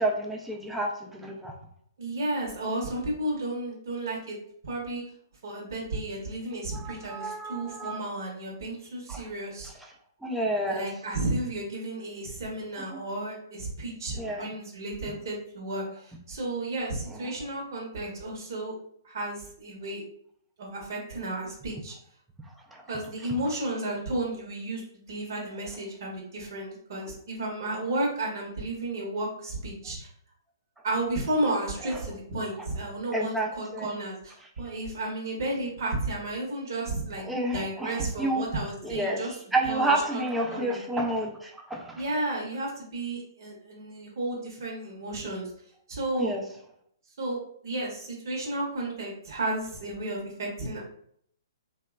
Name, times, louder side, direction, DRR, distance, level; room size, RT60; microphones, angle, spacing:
voice 1, 0.0-1.5 6.7-8.0 9.1-9.2 10.2-10.8 14.2-14.5 17.2-17.3 22.7-22.8 33.1-33.9 37.2-38.4 38.8-42.0 46.1-46.4, right 1 dB, 5° right, 0 dB, 0.4 m, -30 dB
voice 2, 2.0-4.4 4.6-5.0 5.4-9.7 10.7-18.7 19.0-20.0 20.6-21.9 22.9-30.1 30.8-39.4 39.6-40.2 40.5-40.8 42.0-45.5 45.9-46.3 47.2-50.8, right 2 dB, 60° right, -2 dB, 0.8 m, -33 dB
2.8 x 2.1 x 2.3 m, 0.65 s
hypercardioid pair, 135°, 2 cm